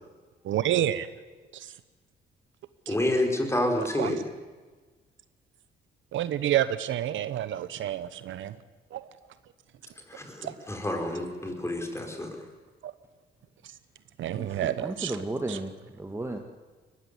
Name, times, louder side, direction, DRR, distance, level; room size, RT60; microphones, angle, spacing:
voice 1, 0.4-1.1 1.5-1.7 2.9-3.0 3.8-4.2 6.1-8.6 8.9-9.1 10.4-10.5 12.8-12.9 14.2-15.1 15.5-15.6, right 12 dB, 75° right, 14 dB, 1.0 m, -29 dB
voice 2, 2.9-4.2 10.1-12.3, left 1 dB, 15° left, 3 dB, 5.1 m, -29 dB
voice 3, 14.3-16.4, right 2 dB, 15° right, 4 dB, 1.9 m, -34 dB
21.0 x 16.0 x 9.9 m, 1.4 s
cardioid pair, 90°, 20 cm